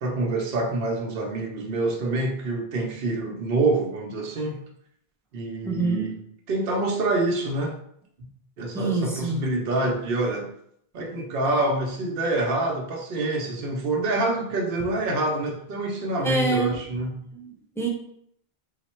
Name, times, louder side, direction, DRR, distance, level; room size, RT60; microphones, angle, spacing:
voice 1, 0.0-4.6 5.3-6.2 6.5-7.7 8.6-10.5 10.9-17.2, right 2 dB, 65° right, 0 dB, 0.8 m, -26 dB
voice 2, 5.6-6.1 8.7-9.4 16.2-16.8 17.3-17.9, right 3 dB, 5° left, 0 dB, 0.4 m, -26 dB
3.9 x 2.1 x 4.2 m, 0.70 s
omnidirectional pair, 1.0 m